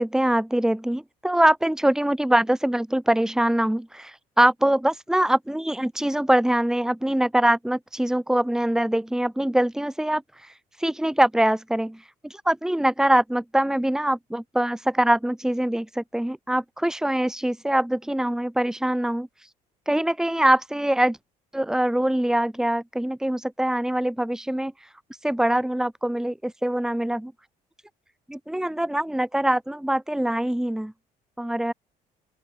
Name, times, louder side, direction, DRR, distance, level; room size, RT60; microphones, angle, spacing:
voice 1, 0.0-10.2 10.8-19.3 19.9-21.2 21.5-24.7 25.2-27.3 28.3-30.9 31.4-31.7, right 1 dB, 5° right, 2.4 m, -23 dB
open air
cardioid pair, 110°, 17 cm